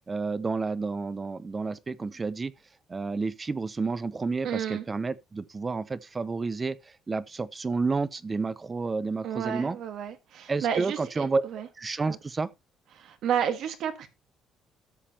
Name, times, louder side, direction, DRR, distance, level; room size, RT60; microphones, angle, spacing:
voice 1, 0.1-2.5 2.9-6.8 7.1-9.8 10.5-11.4 11.8-12.5, right 4 dB, 25° right, 0.7 m, -30 dB
voice 2, 4.4-4.8 9.2-11.7 12.1-12.2 12.9-14.1, right 9 dB, 70° right, 1.5 m, -31 dB
13.0 x 7.3 x 2.9 m
cardioid pair, 130°, 0 cm